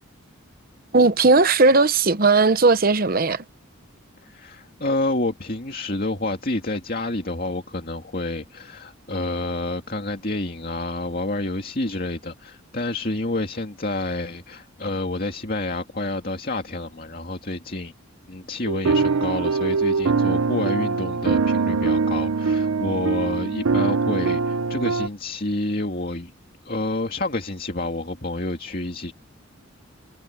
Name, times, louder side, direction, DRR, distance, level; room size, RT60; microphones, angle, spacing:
voice 1, 0.9-3.4, right 3 dB, 45° right, 0.9 m, -17 dB
voice 2, 4.2-17.9 18.3-26.3 26.6-29.1, left 2 dB, 45° left, 2.4 m, -28 dB
sound 1, 18.7-25.1, right 4 dB, 90° right, 0.7 m, -22 dB
head